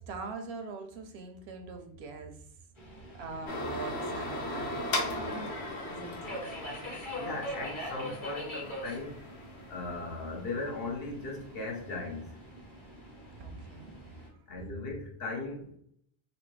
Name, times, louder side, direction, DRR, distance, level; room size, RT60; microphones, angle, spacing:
voice 1, 0.0-2.5 3.2-5.5 5.9-6.5 13.3-14.0 14.3-14.4, right 4 dB, 85° right, 6 dB, 0.9 m, -43 dB
Subway metro underground, 2.8-14.3, equal, 30° left, 0.9 m, -44 dB
sound 1, 3.5-10.1, left 2 dB, 85° left, 1.0 m, -37 dB
voice 2, 7.2-9.3 9.7-12.3 14.5-15.8, left 3 dB, 70° left, 0 dB, 1.1 m, -38 dB
3.1 x 2.6 x 3.1 m, 0.66 s
omnidirectional pair, 1.1 m